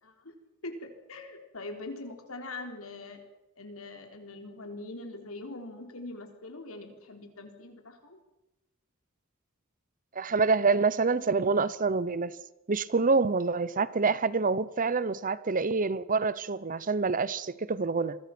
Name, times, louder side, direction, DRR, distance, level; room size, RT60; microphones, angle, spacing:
voice 1, 0.0-0.4 0.6-3.2 3.6-8.2, left 2 dB, 90° left, 4.0 m, -42 dB
voice 2, 10.2-12.3 12.7-18.2, right 4 dB, 40° right, 0.8 m, -27 dB
27.0 x 22.5 x 6.1 m
head